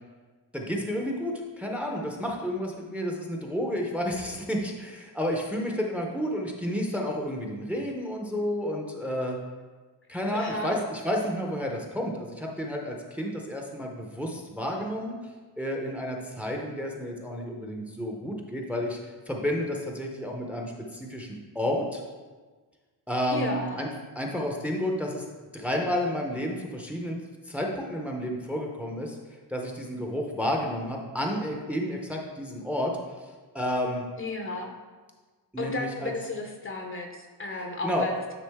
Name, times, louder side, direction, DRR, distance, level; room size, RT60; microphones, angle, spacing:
voice 1, 0.5-9.4 10.1-15.1 15.6-19.0 19.3-22.0 23.1-23.9 24.2-25.2 25.5-27.2 27.5-29.2 29.5-32.9 33.5-34.0 35.5-36.1 37.8-38.1, equal, 5° right, 1 dB, 0.7 m, -31 dB
voice 2, 10.3-10.8 23.3-23.8 34.2-34.7 35.6-38.2, left 2 dB, 30° left, 3 dB, 0.6 m, -33 dB
9.6 x 3.7 x 3.5 m, 1.4 s
wide cardioid pair, 135°, 41 cm